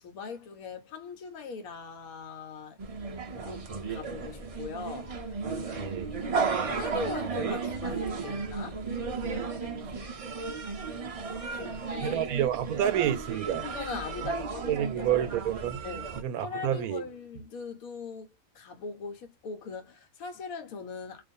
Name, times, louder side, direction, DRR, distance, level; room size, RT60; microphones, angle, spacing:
voice 1, 0.0-2.8 3.4-8.8 11.5-12.2 13.6-15.2 15.8-16.1 16.4-21.2, left 5 dB, 70° left, 1.2 m, -40 dB
sound 1, 2.8-16.2, right 5 dB, 55° right, 0.4 m, -34 dB
voice 2, 12.0-13.7 14.7-15.8 16.1-17.0, right 11 dB, 80° right, 1.0 m, -29 dB
2.5 x 2.4 x 2.5 m
omnidirectional pair, 1.6 m